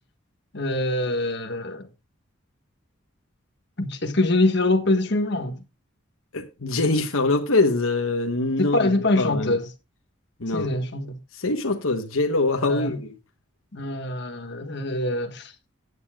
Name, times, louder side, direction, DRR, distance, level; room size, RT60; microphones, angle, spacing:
voice 1, 0.5-1.9 3.8-5.6 8.6-9.7 10.5-11.1 12.7-13.0 13.7-15.5, left 2 dB, 55° left, 1.5 m, -24 dB
voice 2, 6.3-9.6 10.4-10.7 11.3-13.1, left 2 dB, 85° left, 1.2 m, -24 dB
16.5 x 9.6 x 2.4 m
head